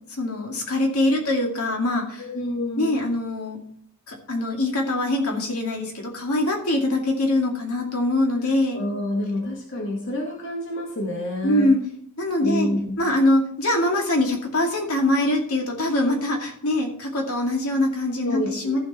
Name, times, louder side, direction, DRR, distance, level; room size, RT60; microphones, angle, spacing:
voice 1, 0.1-2.3 2.8-3.6 4.1-8.8 11.4-11.8 12.2-12.7 13.0-18.8, left 1 dB, 75° left, 1 dB, 2.3 m, -23 dB
voice 2, 2.2-3.0 8.7-11.7 12.4-13.0 18.2-18.8, left 1 dB, 60° left, -1 dB, 1.9 m, -28 dB
14.5 x 5.1 x 4.3 m, 0.64 s
head